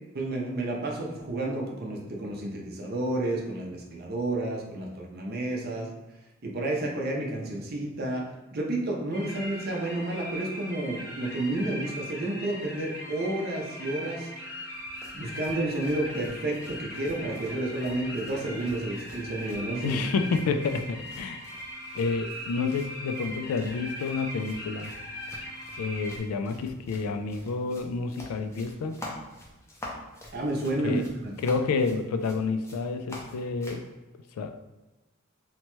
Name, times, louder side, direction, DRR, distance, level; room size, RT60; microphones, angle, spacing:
voice 1, 0.1-5.9 6.4-8.3 8.5-14.3 15.1-20.0 30.3-31.3, right 1 dB, 45° right, -1 dB, 0.5 m, -31 dB
sound 1, 9.1-26.2, equal, 45° left, 0.8 m, -40 dB
sound 2, 14.7-33.9, left 1 dB, 10° left, 0.4 m, -48 dB
voice 2, 19.8-21.4 22.0-24.9 25.8-28.9 30.8-31.0 31.4-33.8 34.4-34.5, left 4 dB, 85° left, 9 dB, 0.3 m, -29 dB
2.8 x 2.2 x 3.0 m, 1.1 s
head